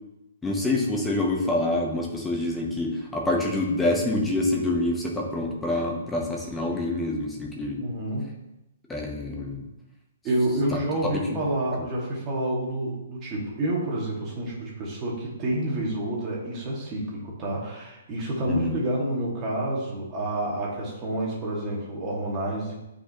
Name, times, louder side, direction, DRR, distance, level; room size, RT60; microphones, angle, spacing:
voice 1, 0.4-7.8 8.9-9.7 10.7-10.8 11.1-11.4 11.7-11.8 18.4-18.8, left 2 dB, 5° left, -1 dB, 1.0 m, -27 dB
voice 2, 7.7-8.4 10.2-22.7, right 1 dB, 20° right, -4 dB, 2.1 m, -28 dB
9.2 x 5.0 x 3.0 m, 0.93 s
hypercardioid pair, 165°, 0 cm